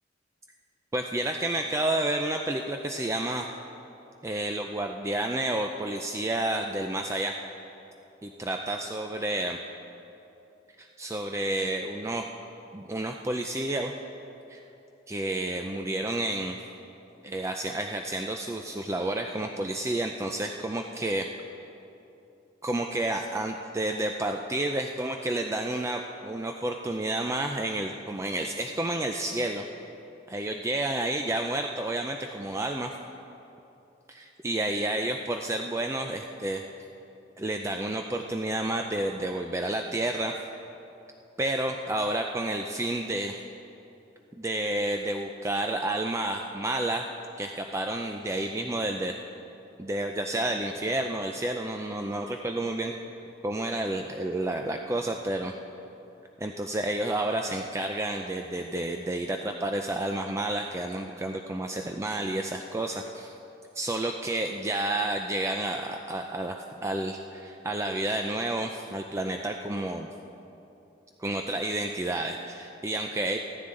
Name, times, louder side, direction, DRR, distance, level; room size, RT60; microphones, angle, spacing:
voice 1, 0.9-3.5 4.2-7.4 8.2-9.6 10.8-12.2 12.7-13.9 14.5-14.6 15.1-16.6 17.2-21.3 22.6-29.7 30.3-32.9 34.1-36.6 37.4-40.4 41.4-43.4 44.4-47.1 47.4-49.1 49.8-52.9 53.4-55.5 56.4-63.3 63.7-70.1 71.2-73.4, right 1 dB, 15° right, 3 dB, 0.4 m, -30 dB
15.5 x 13.5 x 3.8 m, 2.9 s
head